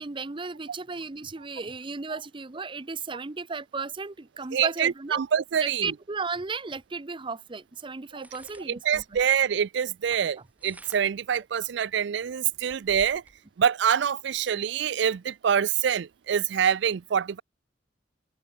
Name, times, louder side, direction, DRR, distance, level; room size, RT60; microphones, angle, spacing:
voice 1, 0.0-5.2 5.6-9.0, right 4 dB, 25° right, 0.7 m, -35 dB
voice 2, 4.5-5.9 8.8-13.2 13.6-17.4, right 8 dB, 65° right, 0.4 m, -25 dB
sound 1, 6.7-6.8 8.1-9.4 10.4-11.3 11.9-12.0 12.3-13.4, right 1 dB, 10° right, 3.6 m, -51 dB
head